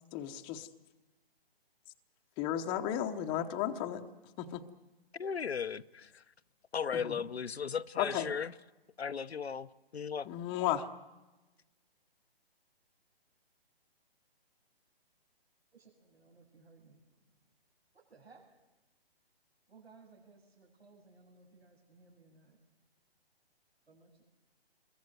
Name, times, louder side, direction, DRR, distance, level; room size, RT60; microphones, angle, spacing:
voice 1, 0.1-0.7 2.4-4.0 4.4-4.6 7.0-7.2 8.0-8.3 10.3-10.9, left 11 dB, 15° left, 0.9 m, -34 dB
voice 2, 5.1-6.2 6.7-8.5 9.0-10.3, left 6 dB, 85° left, 0.9 m, -36 dB
voice 3, 15.7-17.0 17.9-18.4 19.7-22.6 23.9-24.2, right 4 dB, 90° right, 7.3 m, -60 dB
28.5 x 22.5 x 7.8 m
hypercardioid pair, 145°, 31 cm